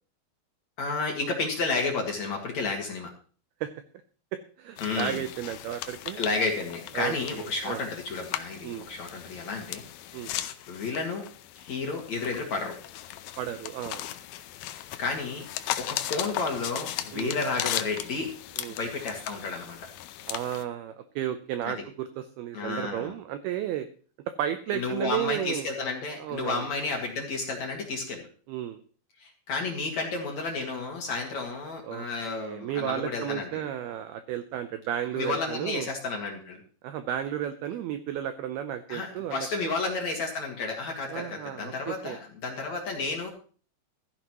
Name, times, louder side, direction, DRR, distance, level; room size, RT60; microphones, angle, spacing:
voice 1, 0.8-3.1 4.8-5.2 6.2-10.4 10.7-11.3 11.6-12.8 14.8-18.3 18.8-19.8 21.6-21.8 22.5-23.1 24.7-28.3 29.2-33.6 35.1-36.6 38.9-43.3, left 3 dB, 55° left, 1 dB, 2.3 m, -32 dB
voice 2, 4.3-6.2 6.9-7.8 8.6-8.9 10.1-10.3 13.4-14.0 17.1-17.4 18.6-18.8 20.3-23.9 24.4-25.7 26.2-26.7 28.5-28.8 31.9-35.9 36.8-39.7 41.1-42.2, right 11 dB, 85° right, 10 dB, 2.2 m, -33 dB
sound 1, 4.8-20.6, left 13 dB, 85° left, 2.1 m, -37 dB
15.5 x 13.5 x 3.0 m, 0.40 s
omnidirectional pair, 5.2 m